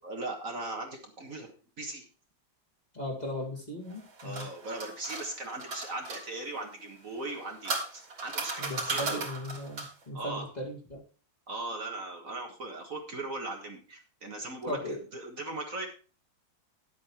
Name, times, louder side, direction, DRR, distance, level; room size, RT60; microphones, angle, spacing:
voice 1, 0.0-2.1 4.2-9.2 10.1-10.5 11.5-15.9, right 2 dB, 45° right, 2 dB, 1.8 m, -39 dB
voice 2, 2.9-4.5 8.6-11.0 14.6-15.0, left 1 dB, 20° left, -1 dB, 2.1 m, -37 dB
sound 1, 3.9-6.2 7.2-10.0, right 3 dB, 80° right, 3.4 m, -36 dB
10.5 x 8.3 x 4.4 m, 0.36 s
omnidirectional pair, 2.1 m